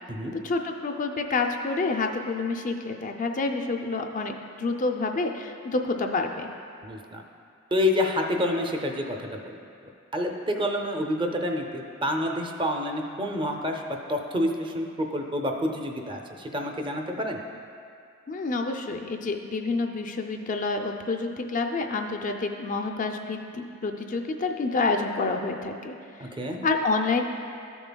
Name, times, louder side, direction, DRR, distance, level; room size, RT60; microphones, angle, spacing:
voice 1, 0.4-6.5 18.3-25.9 26.6-27.2, left 3 dB, 40° left, 4 dB, 0.4 m, -28 dB
voice 2, 6.8-7.2 7.7-9.6 10.1-13.8 14.1-17.4 26.2-26.6, left 1 dB, 25° right, 2 dB, 0.5 m, -28 dB
13.0 x 6.9 x 2.2 m, 2.4 s
head